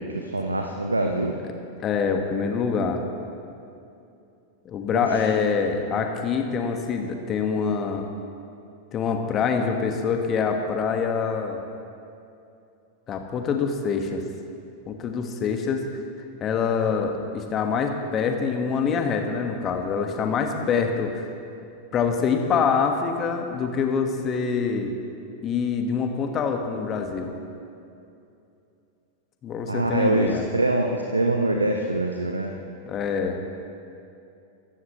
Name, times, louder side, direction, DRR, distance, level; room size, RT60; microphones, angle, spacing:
voice 1, 0.0-1.3 4.9-5.2 20.6-20.7 29.7-32.5, right 2 dB, 80° right, 3 dB, 0.9 m, -24 dB
voice 2, 1.8-3.0 4.6-8.1 8.9-11.6 13.1-14.2 14.9-15.8 16.4-21.3 21.9-24.9 25.4-27.3 29.4-30.4 32.9-33.4, left 5 dB, 30° left, 4 dB, 1.6 m, -25 dB
24.0 x 14.0 x 3.2 m, 2.6 s
figure-of-eight pair, 90°, 0 cm